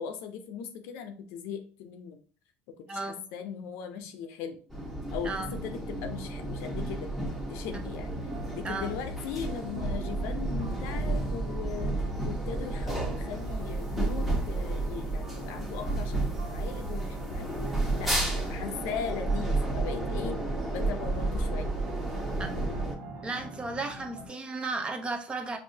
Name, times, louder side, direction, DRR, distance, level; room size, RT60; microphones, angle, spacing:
voice 1, 0.0-2.2 2.7-4.6 5.1-7.1 7.5-8.1 8.6-12.0 12.2-20.4 20.7-21.7, left 7 dB, 80° left, 0.6 m, -39 dB
voice 2, 2.9-3.2 5.2-5.6 7.7-7.8 8.6-8.9 18.2-18.3 22.4-22.5 23.2-25.6, right 3 dB, 25° right, 0.7 m, -34 dB
sound 1, 4.7-22.9, right 2 dB, 5° right, 1.0 m, -32 dB
sound 2, 7.2-7.6 8.3-24.3, right 2 dB, 70° right, 1.4 m, -45 dB
5.4 x 2.6 x 2.8 m
supercardioid pair, 105°, 4 cm